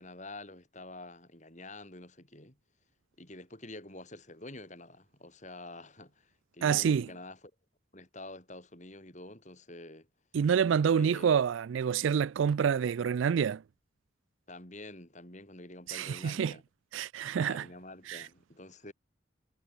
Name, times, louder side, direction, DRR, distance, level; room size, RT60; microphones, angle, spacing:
voice 1, 0.0-2.6 3.2-7.4 7.9-10.1 10.9-11.3 14.5-16.6 17.4-18.9, left 2 dB, 35° left, 5.7 m, -47 dB
voice 2, 6.6-7.1 10.3-13.6 15.9-16.5 16.9-17.7 18.1-18.3, right 7 dB, 75° right, 0.3 m, -27 dB
head